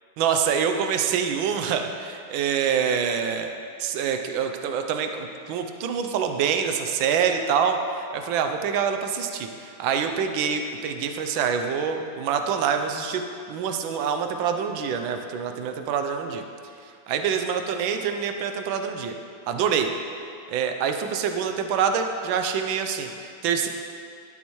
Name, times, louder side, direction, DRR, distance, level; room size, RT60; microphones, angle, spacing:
voice 1, 0.2-3.5 3.8-13.2 13.5-16.4 17.1-19.2 19.5-19.9 20.5-23.7, right 7 dB, 80° right, 6 dB, 1.4 m, -26 dB
12.5 x 8.4 x 3.1 m, 2.4 s
omnidirectional pair, 2.1 m